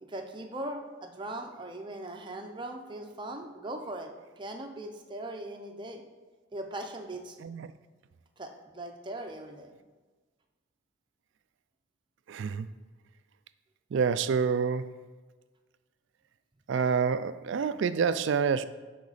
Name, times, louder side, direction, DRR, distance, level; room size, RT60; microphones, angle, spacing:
voice 1, 0.0-6.0 6.5-7.4 8.4-9.7, right 1 dB, 25° right, 0.6 m, -40 dB
voice 2, 12.3-12.7 13.9-14.9 16.7-18.7, right 6 dB, 65° right, 0.3 m, -27 dB
9.7 x 3.8 x 4.1 m
head